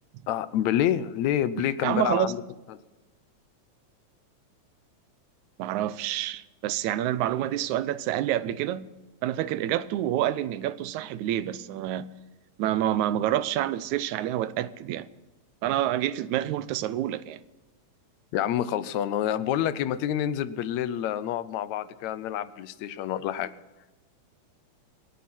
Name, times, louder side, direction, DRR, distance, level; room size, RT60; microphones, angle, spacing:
voice 1, 0.3-2.4 2.7-2.8 18.3-23.5, left 11 dB, 80° left, 2.0 m, -28 dB
voice 2, 1.8-2.3 5.6-8.8 9.2-12.1 12.6-15.1 15.6-17.4, right 12 dB, 85° right, 2.1 m, -28 dB
27.5 x 9.3 x 4.3 m
omnidirectional pair, 3.3 m